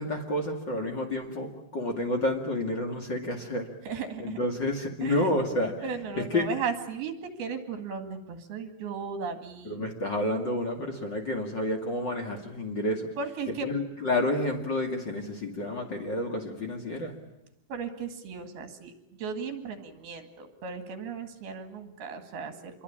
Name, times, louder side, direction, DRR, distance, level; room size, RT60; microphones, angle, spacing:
voice 1, 0.0-3.7 4.2-5.8 6.2-6.5 9.6-13.1 13.6-17.1, left 1 dB, 35° left, 3 dB, 2.4 m, -30 dB
voice 2, 3.9-4.4 5.0-5.3 5.8-9.8 13.2-13.7 17.7-18.9 19.2-22.8, right 5 dB, 75° right, 8 dB, 4.1 m, -36 dB
26.5 x 22.5 x 8.7 m, 0.85 s
omnidirectional pair, 4.5 m